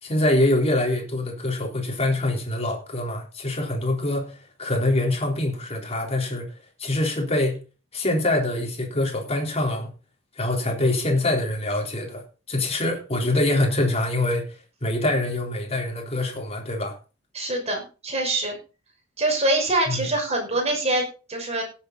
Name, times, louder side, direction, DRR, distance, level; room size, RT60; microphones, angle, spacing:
voice 1, 0.0-6.5 6.8-7.6 7.9-9.9 10.4-14.4 14.8-16.9 19.9-20.1, left 1 dB, 30° left, 3.7 m, -24 dB
voice 2, 17.3-18.6 19.2-21.6, right 2 dB, 35° right, 6.0 m, -24 dB
17.5 x 8.1 x 4.0 m
head